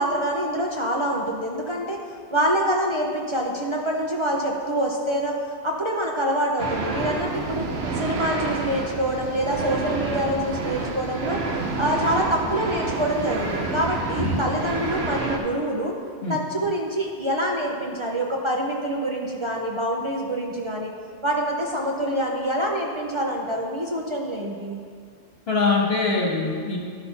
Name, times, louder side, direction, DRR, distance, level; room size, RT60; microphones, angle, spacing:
voice 1, 0.0-2.0 2.3-5.4 5.6-7.6 7.9-11.4 11.8-16.0 16.3-20.9 21.2-24.8, right 1 dB, 30° right, -1 dB, 0.7 m, -26 dB
sound 1, 6.6-15.4, right 3 dB, 70° right, 1.1 m, -29 dB
voice 2, 25.5-26.8, left 3 dB, 65° left, -2 dB, 1.7 m, -23 dB
11.5 x 4.3 x 5.6 m, 2.1 s
omnidirectional pair, 1.1 m